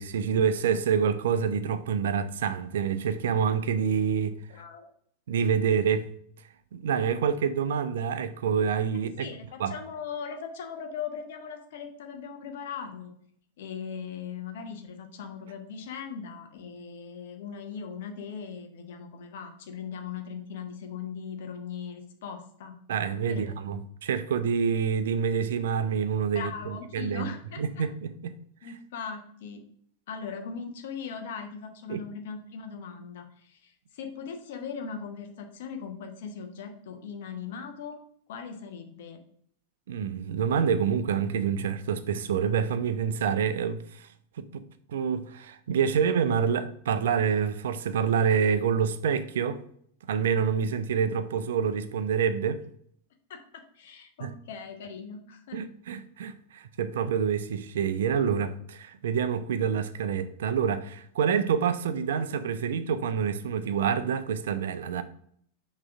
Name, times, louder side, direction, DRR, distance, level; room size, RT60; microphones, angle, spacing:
voice 1, 0.0-4.4 5.3-6.1 6.7-9.3 9.6-9.7 22.9-26.5 26.9-27.3 27.6-28.3 31.9-32.0 39.9-44.1 44.4-44.6 44.9-49.6 50.1-52.6 54.2-54.3 55.5-65.0, right 7 dB, 60° right, 0.5 m, -27 dB
voice 2, 4.5-4.9 9.2-13.2 13.6-22.8 23.3-23.5 26.3-27.8 28.6-29.7 30.1-38.0 38.3-39.2 53.3-55.7, left 6 dB, 55° left, 1.0 m, -39 dB
6.1 x 3.2 x 5.8 m
figure-of-eight pair, 90°, 0 cm